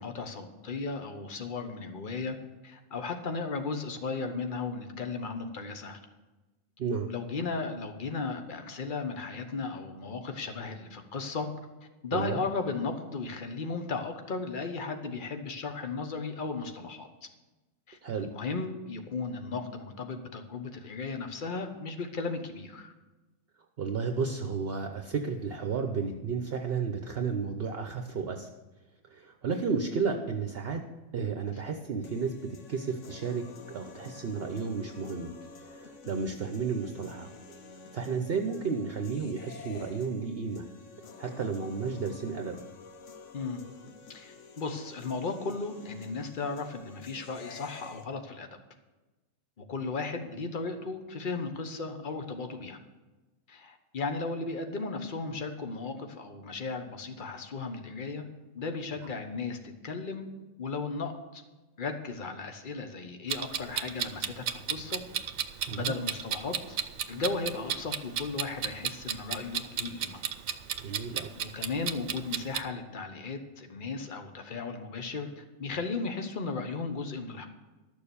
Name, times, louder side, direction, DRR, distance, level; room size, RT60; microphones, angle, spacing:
voice 1, 0.0-2.4 2.6-6.0 7.1-11.5 12.0-17.1 17.9-22.9 43.3-43.6 44.1-48.6 49.6-52.8 53.5-58.2 58.5-60.3 60.6-61.4 61.8-65.0 65.7-66.8 67.1-70.2 71.3-77.5, left 4 dB, 40° left, 6 dB, 1.2 m, -35 dB
voice 2, 18.0-18.3 23.8-28.5 29.0-30.8 31.1-35.3 35.6-37.3 37.9-40.6 41.2-42.6 65.7-65.9 70.8-71.3, right 5 dB, 55° right, 5 dB, 0.9 m, -32 dB
sound 1, 32.0-48.0, left 4 dB, 70° left, 1.2 m, -50 dB
Clock, 63.3-72.6, right 8 dB, 85° right, 1.1 m, -34 dB
12.5 x 6.8 x 7.0 m, 1.1 s
omnidirectional pair, 1.3 m